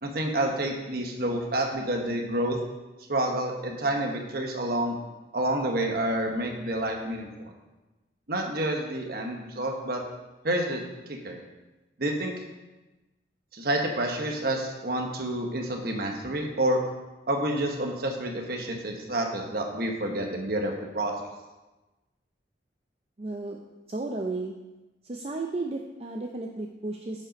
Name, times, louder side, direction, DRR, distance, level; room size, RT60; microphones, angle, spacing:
voice 1, 0.0-2.6 3.1-4.9 5.3-7.5 8.3-10.0 10.4-10.8 11.1-11.4 12.0-12.3 13.5-16.8 17.3-21.1, right 1 dB, 55° right, 2 dB, 1.1 m, -29 dB
voice 2, 23.2-23.6 23.9-24.5 25.0-27.3, right 2 dB, 35° right, 2 dB, 0.5 m, -33 dB
9.4 x 5.3 x 5.2 m, 1.1 s
head